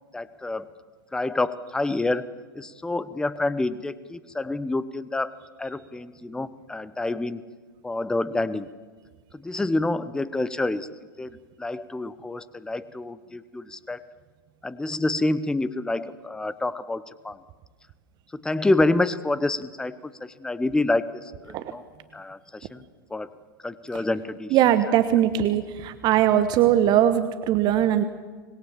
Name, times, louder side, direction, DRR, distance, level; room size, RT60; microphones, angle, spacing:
voice 1, 0.1-0.7 1.1-2.3 2.5-7.4 7.8-8.7 9.3-10.9 11.2-11.3 11.6-14.1 14.6-17.4 18.3-21.8 22.1-22.8 23.1-23.3 23.6-24.8, left 2 dB, 5° left, 16 dB, 0.8 m, -28 dB
voice 2, 24.5-28.0, right 11 dB, 40° right, 11 dB, 1.1 m, -20 dB
25.5 x 20.5 x 7.2 m, 1.5 s
figure-of-eight pair, 95°, 12 cm